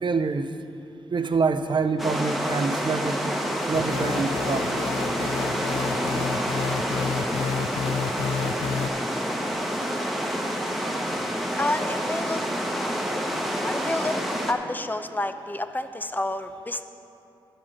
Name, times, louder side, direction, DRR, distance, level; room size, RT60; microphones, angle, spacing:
voice 1, 0.0-0.5 1.1-3.4 3.7-4.8 5.8-5.9 13.1-13.2, right 4 dB, 55° right, 10 dB, 0.6 m, -26 dB
sound 1, 2.0-14.5, equal, ahead, 1.2 m, -28 dB
sound 2, 3.7-8.9, left 6 dB, 80° left, 0.4 m, -30 dB
voice 2, 11.6-12.4 12.7-12.9 13.6-14.2 14.5-16.8, left 2 dB, 20° left, 9 dB, 0.6 m, -29 dB
12.5 x 5.1 x 7.2 m, 2.7 s
cardioid pair, 55°, 10 cm